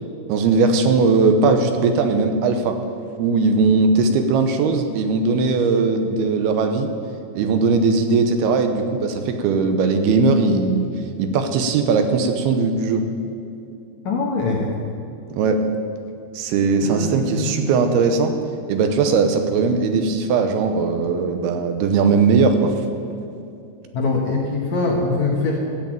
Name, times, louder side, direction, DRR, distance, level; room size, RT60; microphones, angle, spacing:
voice 1, 0.3-2.7 3.2-6.9 7.3-10.9 11.2-13.0 15.3-15.6 16.3-18.3 18.7-22.7, right 4 dB, 75° right, 6 dB, 2.8 m, -19 dB
voice 2, 14.0-14.7 16.8-17.5 23.9-25.6, left 3 dB, 60° left, -1 dB, 2.1 m, -22 dB
13.5 x 8.3 x 8.9 m, 2.6 s
omnidirectional pair, 4.7 m